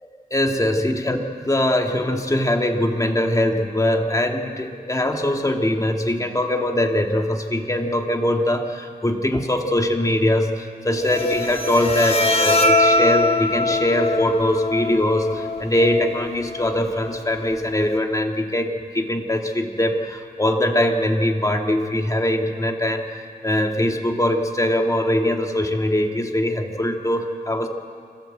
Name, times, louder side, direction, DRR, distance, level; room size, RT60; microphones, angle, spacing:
voice 1, 0.0-27.7, left 1 dB, 20° left, 3 dB, 2.2 m, -22 dB
Bowed string instrument, 10.9-18.0, left 2 dB, 40° left, 1.6 m, -23 dB
26.0 x 15.5 x 8.0 m, 2.1 s
wide cardioid pair, 95°, 16 cm